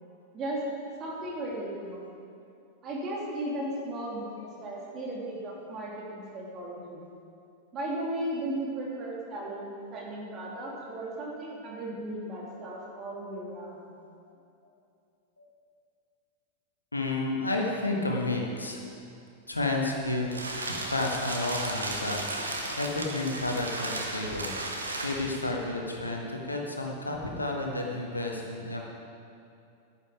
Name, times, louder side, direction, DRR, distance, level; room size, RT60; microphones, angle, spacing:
voice 1, 1.0-2.1 2.8-7.0 7.7-13.9, right 1 dB, 30° right, -3 dB, 2.6 m, -36 dB
voice 2, 16.9-18.9 19.5-28.8, left 2 dB, 80° left, 0 dB, 1.4 m, -31 dB
sound 1, 19.9-25.5, right 2 dB, 80° right, 1.1 m, -35 dB
10.5 x 9.5 x 4.9 m, 2.6 s
figure-of-eight pair, 90°, 0 cm